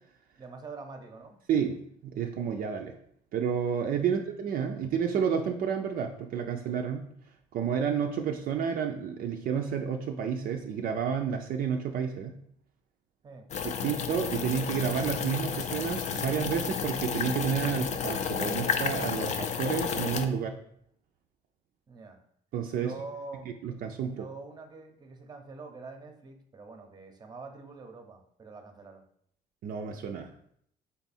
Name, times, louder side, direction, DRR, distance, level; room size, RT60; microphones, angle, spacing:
voice 1, 0.4-1.4 4.0-4.1 13.2-13.5 21.9-22.2 22.7-23.4 24.0-29.0, right 3 dB, 25° right, 5 dB, 0.7 m, -45 dB
voice 2, 1.5-3.0 3.3-7.1 7.5-12.3 13.6-20.6 22.5-22.9 23.6-24.3 29.6-30.3, right 7 dB, 55° right, 3 dB, 0.4 m, -30 dB
sound 1, 13.5-20.3, left 6 dB, 45° left, 0.5 m, -32 dB
3.6 x 3.5 x 4.2 m, 0.68 s
cardioid pair, 110°, 17 cm